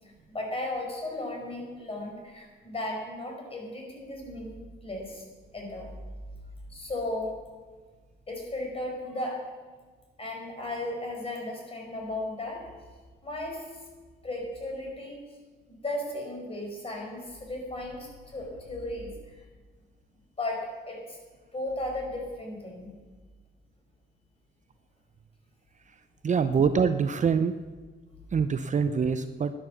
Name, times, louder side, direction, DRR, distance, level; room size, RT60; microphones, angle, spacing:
voice 1, 0.0-5.3 5.5-5.9 6.7-7.4 8.3-9.4 10.2-12.7 13.2-13.8 14.2-15.2 15.7-19.5 20.4-21.2 21.5-22.9, left 1 dB, 30° left, 0 dB, 5.4 m, -35 dB
voice 2, 26.2-27.5 28.3-29.5, right 6 dB, 40° right, 10 dB, 0.6 m, -24 dB
12.0 x 10.5 x 7.1 m, 1.4 s
cardioid pair, 90°, 20 cm